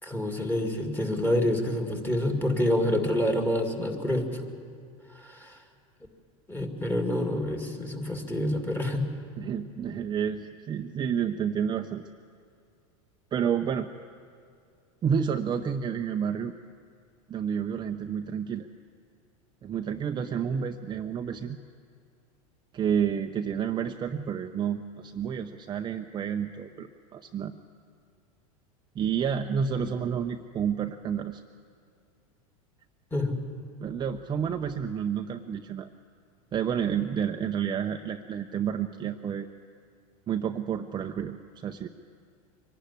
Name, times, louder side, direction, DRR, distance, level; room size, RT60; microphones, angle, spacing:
voice 1, 0.0-4.4 5.1-5.6 6.5-9.1 33.1-33.4, left 1 dB, 10° left, 4 dB, 2.2 m, -27 dB
voice 2, 9.4-12.0 13.3-13.9 15.0-16.5 17.3-18.7 19.6-21.6 22.7-27.5 29.0-31.4 33.8-35.9 36.5-39.5 40.3-41.9, right 7 dB, 25° right, 5 dB, 0.6 m, -30 dB
24.0 x 11.5 x 9.8 m, 2.3 s
supercardioid pair, 120°, 19 cm